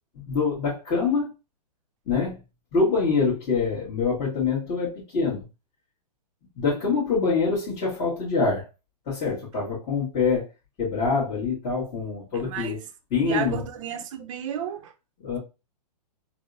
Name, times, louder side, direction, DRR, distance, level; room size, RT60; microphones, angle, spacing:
voice 1, 0.1-1.3 2.1-2.4 2.7-5.4 6.5-8.7 9.0-10.5 10.8-12.8 13.1-13.6 15.2-15.4, left 4 dB, 25° left, 1.3 m, -25 dB
voice 2, 12.4-12.8 13.3-14.9, right 9 dB, 50° right, 0.6 m, -32 dB
4.0 x 2.0 x 2.6 m
hypercardioid pair, 140°, 21 cm